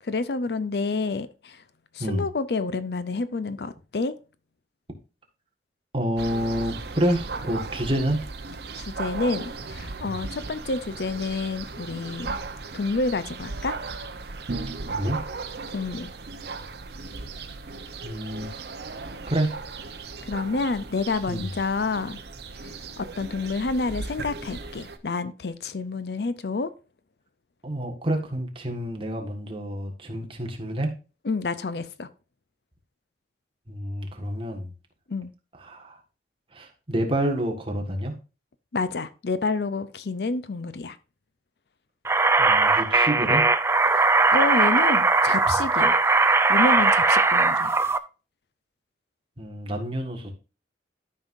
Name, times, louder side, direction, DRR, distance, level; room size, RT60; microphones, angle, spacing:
voice 1, 0.0-1.6 1.9-4.1 8.8-12.4 12.7-13.7 15.7-16.1 20.2-22.2 22.6-26.7 31.2-32.1 35.1-35.3 38.7-41.0 43.9-46.0 46.5-47.8, left 3 dB, 60° left, 0.6 m, -29 dB
voice 2, 5.9-8.2 14.9-15.2 18.0-18.5 19.3-19.5 21.3-21.5 27.6-30.9 33.7-34.7 35.6-36.0 36.5-38.1 42.4-43.4 49.4-50.3, equal, 30° right, 1.6 m, -28 dB
sound 1, 6.2-25.0, right 3 dB, 65° right, 0.8 m, -36 dB
sound 2, 42.1-48.0, right 3 dB, 15° right, 0.3 m, -19 dB
12.5 x 5.5 x 2.6 m
head